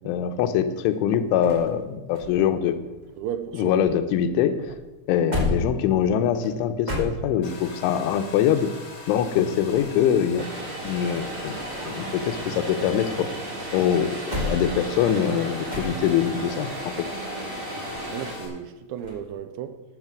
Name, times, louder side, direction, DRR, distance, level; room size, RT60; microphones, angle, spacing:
voice 1, 0.0-2.8 3.6-4.6 5.1-8.7 9.1-10.5 10.8-11.6 11.8-13.3 13.7-17.0, left 9 dB, 85° left, 3.3 m, -23 dB
sound 1, 0.6-3.8 4.1-7.7 9.4-11.2 11.5-13.3 13.7-16.4 19.0-19.3, left 2 dB, 25° right, 0.9 m, -34 dB
voice 2, 3.2-3.7 18.1-19.8, right 9 dB, 85° right, 3.1 m, -34 dB
Domestic sounds home sounds, 7.4-18.5, left 4 dB, 45° left, 3.3 m, -41 dB
Vehicle, 10.4-18.3, right 3 dB, 50° right, 1.3 m, -35 dB
12.5 x 8.2 x 6.2 m
omnidirectional pair, 5.4 m